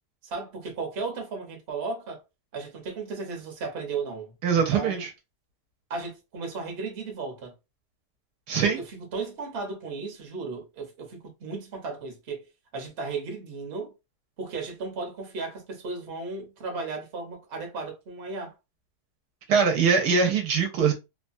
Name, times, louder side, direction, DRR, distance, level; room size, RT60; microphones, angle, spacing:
voice 1, 0.2-2.2 2.5-5.1 5.9-7.5 8.6-12.5 12.7-13.9 14.4-18.6, right 4 dB, 45° right, 1.0 m, -35 dB
voice 2, 4.4-5.1 8.5-8.8 19.5-20.9, right 6 dB, 80° right, 1.2 m, -22 dB
3.0 x 2.2 x 2.5 m
omnidirectional pair, 1.8 m